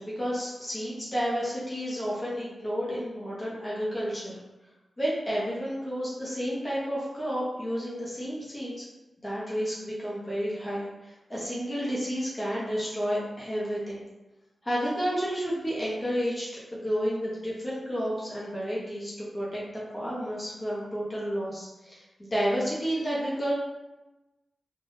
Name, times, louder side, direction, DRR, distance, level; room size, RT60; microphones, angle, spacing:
voice 1, 0.0-4.4 5.0-8.8 9.2-10.9 11.3-14.0 14.6-19.6 19.9-23.5, equal, 35° left, -7 dB, 1.1 m, -31 dB
3.4 x 2.6 x 2.7 m, 1.0 s
cardioid pair, 45°, 0 cm